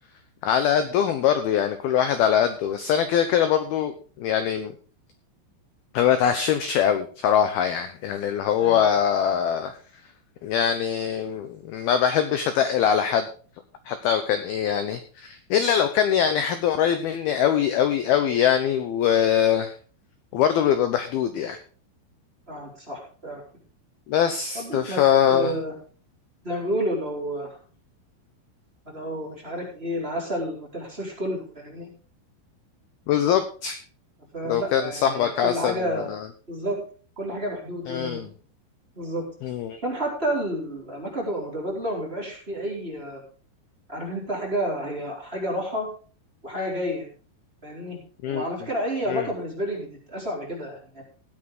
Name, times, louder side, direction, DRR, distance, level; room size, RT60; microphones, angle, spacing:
voice 1, 0.4-4.7 5.9-9.8 10.4-13.3 13.9-19.7 20.3-21.6 24.1-25.5 33.1-33.8 34.4-36.3 37.9-38.3 39.4-39.8 48.2-48.4 49.1-49.3, left 9 dB, 85° left, 9 dB, 2.2 m, -23 dB
voice 2, 8.6-8.9 22.5-23.4 24.5-25.0 25.3-25.7 26.4-27.6 28.9-31.9 34.3-36.1 36.5-36.8 37.2-38.2 39.0-39.2 39.8-43.2 43.9-45.9 46.4-47.1 47.6-48.0 48.2-51.0, equal, 15° right, -2 dB, 3.8 m, -30 dB
16.5 x 9.7 x 3.8 m, 0.39 s
omnidirectional pair, 5.7 m